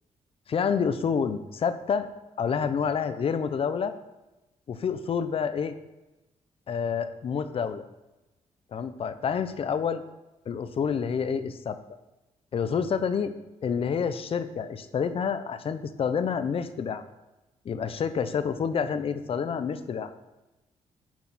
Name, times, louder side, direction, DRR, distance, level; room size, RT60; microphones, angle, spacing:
voice 1, 0.5-2.1 2.4-3.9 4.7-5.7 6.7-7.8 8.7-10.0 10.5-11.8 12.5-13.3 13.6-17.0 17.6-20.1, left 6 dB, 50° left, 11 dB, 0.7 m, -28 dB
10.5 x 6.4 x 4.2 m, 1.0 s
cardioid pair, 95°, 12 cm